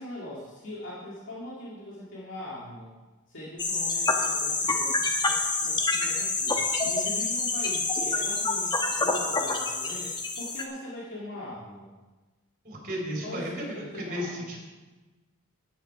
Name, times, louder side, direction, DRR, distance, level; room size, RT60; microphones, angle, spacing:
voice 1, 0.0-2.9 3.3-11.9 13.2-14.5, left 1 dB, 60° left, -6 dB, 2.3 m, -41 dB
sound 1, 3.6-10.6, left 3 dB, 20° left, 1.2 m, -27 dB
voice 2, 12.6-14.6, equal, 40° right, -1 dB, 3.9 m, -34 dB
12.5 x 10.0 x 4.8 m, 1.2 s
head